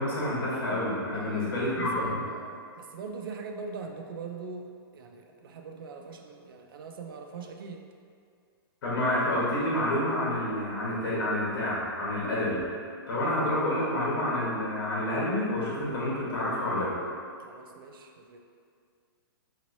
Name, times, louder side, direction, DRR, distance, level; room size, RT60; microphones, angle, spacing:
voice 1, 0.0-2.1 8.8-12.6 13.1-17.0, left 1 dB, 60° left, -7 dB, 1.1 m, -28 dB
voice 2, 1.1-7.9 17.4-18.4, right 4 dB, 60° right, 3 dB, 0.4 m, -42 dB
2.9 x 2.8 x 2.7 m, 2.3 s
hypercardioid pair, 160°, 13 cm